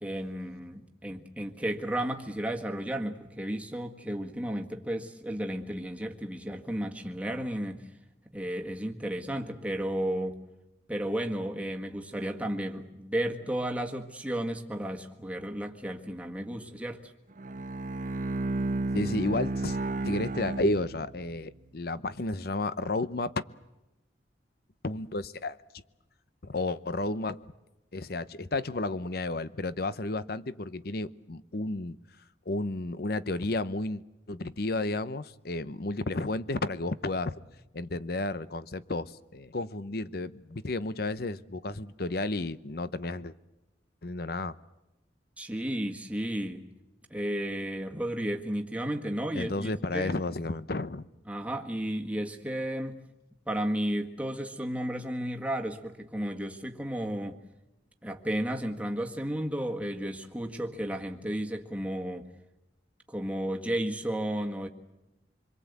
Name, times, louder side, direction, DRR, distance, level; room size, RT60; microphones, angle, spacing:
voice 1, 0.0-7.9 8.3-10.4 10.9-17.0 45.4-46.7 47.1-50.2 51.3-53.0 53.5-57.4 58.0-62.3 63.1-64.7, right 1 dB, 10° right, 1.7 m, -33 dB
Bowed string instrument, 17.3-21.4, right 2 dB, 45° right, 1.1 m, -32 dB
voice 2, 18.9-19.8 20.0-23.3 24.8-25.8 26.4-27.5 27.9-32.0 32.5-37.3 37.7-43.3 44.0-44.6 49.3-51.1, left 2 dB, 55° left, 0.9 m, -32 dB
26.5 x 22.5 x 8.3 m
head